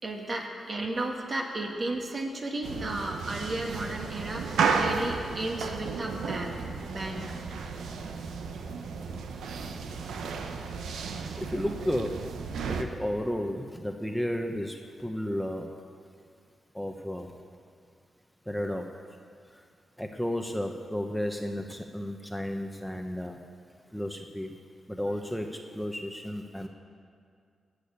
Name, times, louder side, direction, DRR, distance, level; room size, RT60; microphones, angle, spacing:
voice 1, 0.0-6.6 6.9-7.4, right 2 dB, 45° right, 1 dB, 2.1 m, -34 dB
sound 1, 2.6-12.8, right 5 dB, 85° right, 0.8 m, -33 dB
voice 2, 11.4-12.2 12.7-15.7 16.7-17.3 18.5-18.9 20.0-23.4 23.9-24.5 24.9-26.7, equal, ahead, 4 dB, 1.0 m, -33 dB
17.0 x 6.4 x 8.4 m, 2.2 s
cardioid pair, 65°, 0 cm